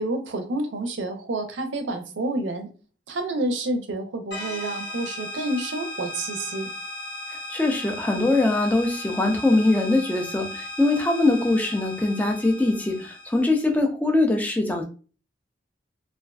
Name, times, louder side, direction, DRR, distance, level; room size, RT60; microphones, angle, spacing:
voice 1, 0.0-2.7 3.1-6.7, right 2 dB, 80° right, 6 dB, 0.5 m, -29 dB
sound 1, 4.3-13.7, left 2 dB, 65° left, 0.8 m, -36 dB
voice 2, 7.3-14.8, left 2 dB, 10° left, 3 dB, 0.3 m, -22 dB
2.4 x 2.3 x 2.2 m, 0.37 s
head